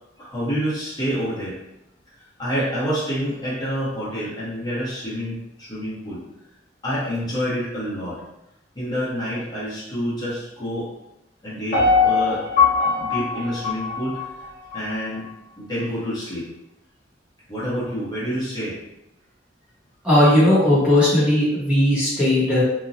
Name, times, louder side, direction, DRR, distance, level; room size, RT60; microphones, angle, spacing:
voice 1, 0.2-1.6 2.4-6.2 6.8-8.2 8.7-10.9 11.4-12.4 12.8-14.5 14.7-15.2 15.6-16.5 17.5-18.8, equal, 20° left, -10 dB, 0.9 m, -28 dB
Piano, 11.7-14.8 15.2-15.3, left 5 dB, 50° left, 1.0 m, -21 dB
voice 2, 20.0-22.6, left 1 dB, 5° right, -10 dB, 0.9 m, -17 dB
2.9 x 2.2 x 2.6 m, 0.87 s
head